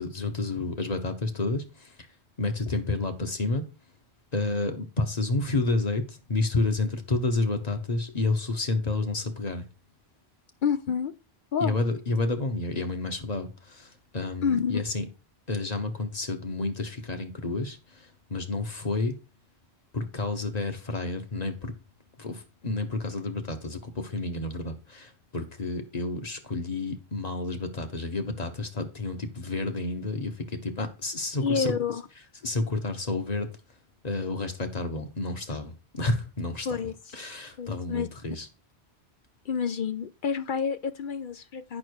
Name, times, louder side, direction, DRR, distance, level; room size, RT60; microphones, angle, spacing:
voice 1, 0.0-1.9 2.4-3.6 4.3-9.7 11.6-15.1 15.5-19.2 19.9-21.7 22.2-31.7 32.4-33.5 34.0-36.7 37.1-38.5, left 3 dB, 40° left, 1.2 m, -30 dB
voice 2, 10.6-11.1 11.5-11.8 14.4-14.8 31.4-32.0 36.7-37.1 37.6-38.1 39.5-41.8, left 6 dB, 60° left, 0.6 m, -28 dB
8.6 x 5.8 x 4.7 m
omnidirectional pair, 1.1 m